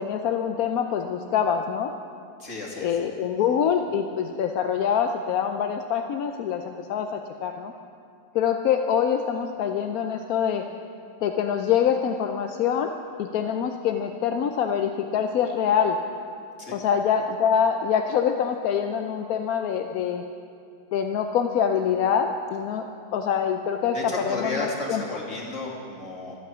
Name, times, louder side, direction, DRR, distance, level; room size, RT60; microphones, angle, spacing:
voice 1, 0.0-1.9 2.8-7.7 8.3-10.6 11.2-12.9 13.2-16.0 16.7-20.2 20.9-22.9 23.1-25.0, left 8 dB, 65° left, 5 dB, 1.0 m, -25 dB
voice 2, 2.4-3.0 16.6-16.8 23.9-26.4, left 2 dB, 45° left, -2 dB, 2.6 m, -33 dB
24.0 x 8.5 x 6.2 m, 2.4 s
omnidirectional pair, 1.9 m